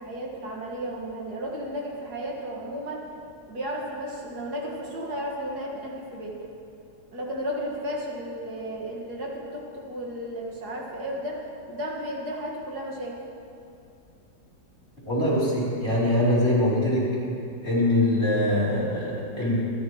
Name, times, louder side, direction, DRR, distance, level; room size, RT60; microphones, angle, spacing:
voice 1, 0.0-3.0 3.5-6.3 7.1-11.4 11.7-13.2, equal, 65° right, -2 dB, 2.3 m, -33 dB
voice 2, 15.1-17.0 17.6-19.6, left 1 dB, 35° left, -7 dB, 3.8 m, -23 dB
25.5 x 11.5 x 3.1 m, 2.6 s
omnidirectional pair, 1.8 m